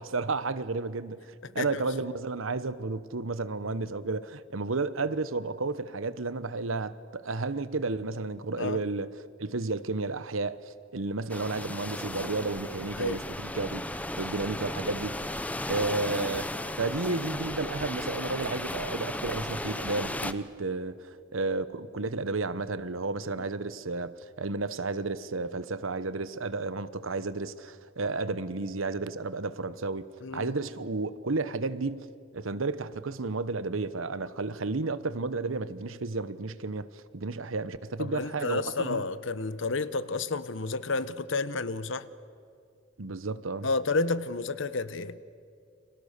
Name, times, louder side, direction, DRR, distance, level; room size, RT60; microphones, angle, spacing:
voice 1, 0.0-13.8 14.2-15.1 15.7-30.1 30.3-32.1 32.3-39.0 43.0-43.7, right 3 dB, 80° right, 1.0 m, -32 dB
sound 1, 11.3-20.3, left 1 dB, 5° left, 0.7 m, -35 dB
voice 2, 30.2-30.6 38.0-42.1 43.6-45.2, left 3 dB, 65° left, 1.0 m, -31 dB
30.0 x 26.0 x 6.7 m
head